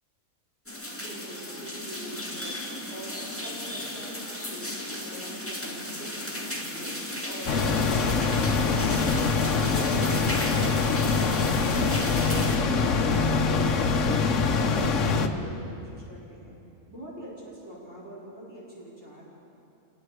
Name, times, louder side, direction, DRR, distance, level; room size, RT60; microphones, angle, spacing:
sound 1, 0.7-12.6, left 1 dB, 10° left, 2.5 m, -35 dB
voice 1, 0.9-2.5 2.9-13.7 14.0-16.6 16.9-19.2, right 1 dB, 50° right, -7 dB, 5.3 m, -43 dB
sound 2, 7.5-15.3, left 4 dB, 65° left, 1.3 m, -24 dB
27.5 x 20.5 x 4.9 m, 2.7 s
omnidirectional pair, 1.4 m